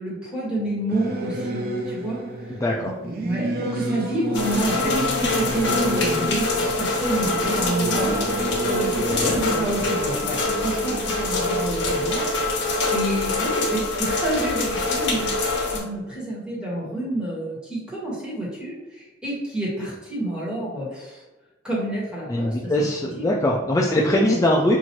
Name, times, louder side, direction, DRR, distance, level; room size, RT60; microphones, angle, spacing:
voice 1, 0.0-2.5 2.8-12.2 12.5-15.3 15.7-21.2 21.6-22.9 23.1-23.4, right 1 dB, 5° right, -6 dB, 1.5 m, -29 dB
Singing / Musical instrument, 0.9-12.8, right 2 dB, 55° right, 0.5 m, -30 dB
voice 2, 2.5-2.9 9.2-9.4 22.3-24.8, left 1 dB, 15° left, -3 dB, 0.4 m, -21 dB
sound 1, 4.3-15.8, left 2 dB, 75° left, 1.2 m, -25 dB
5.7 x 2.6 x 3.0 m, 1.1 s
head